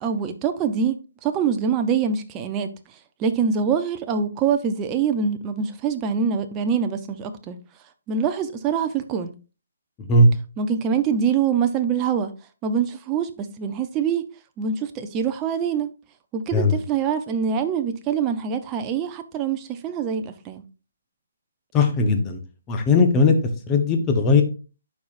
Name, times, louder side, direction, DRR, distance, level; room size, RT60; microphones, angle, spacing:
voice 1, 0.0-2.7 3.2-7.6 8.1-9.3 10.6-12.3 12.6-14.3 14.6-15.9 16.3-20.6, right 6 dB, 20° right, 0.7 m, -24 dB
voice 2, 10.0-10.3 16.5-16.8 21.7-22.4 22.7-23.4 23.7-24.4, left 3 dB, 15° left, 1.1 m, -18 dB
11.5 x 4.8 x 2.6 m
hypercardioid pair, 160°, 0 cm